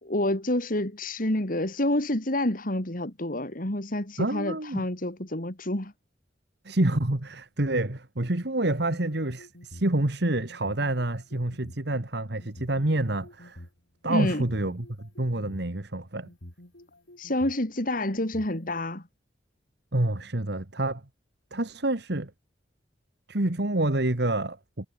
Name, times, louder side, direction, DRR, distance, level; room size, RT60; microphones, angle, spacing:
voice 1, 0.0-5.9 14.1-14.4 17.2-19.0, left 1 dB, 50° left, 3.2 m, -28 dB
voice 2, 4.2-4.8 6.6-13.6 14.0-16.3 19.9-21.0 21.5-22.3 23.3-24.9, right 1 dB, 65° right, 1.9 m, -28 dB
sound 1, 8.8-9.9 10.5-11.8 12.4-13.7 14.3-15.7 16.2-17.6 18.2-18.8, left 1 dB, 80° left, 3.9 m, -47 dB
head